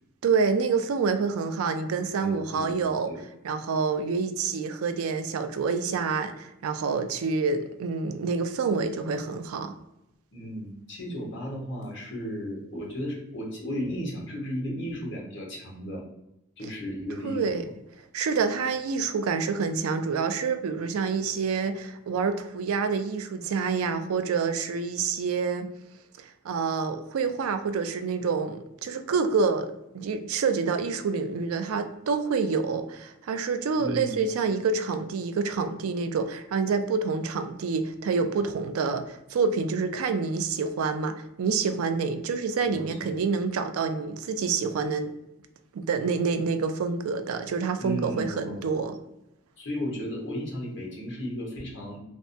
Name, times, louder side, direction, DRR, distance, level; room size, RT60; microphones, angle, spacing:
voice 1, 0.2-3.1 3.4-9.7 17.2-17.6 18.1-25.7 26.2-45.1 45.7-48.9, right 5 dB, 85° right, 9 dB, 0.3 m, -27 dB
voice 2, 2.1-3.2 10.3-16.0 16.6-17.4 33.8-34.2 42.6-43.1 47.8-48.7 49.6-52.0, equal, 55° left, -3 dB, 1.0 m, -35 dB
3.3 x 2.1 x 2.6 m, 0.87 s
head